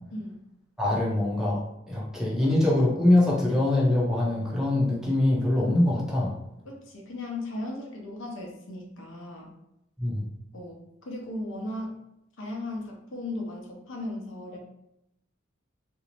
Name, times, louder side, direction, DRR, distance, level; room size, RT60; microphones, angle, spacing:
voice 1, 0.8-6.3 10.0-10.3, left 1 dB, 5° right, -5 dB, 0.5 m, -23 dB
voice 2, 6.7-9.5 10.5-10.8 11.0-12.0 12.4-14.6, left 1 dB, 80° left, 0 dB, 0.7 m, -36 dB
2.5 x 2.0 x 2.9 m, 0.84 s
head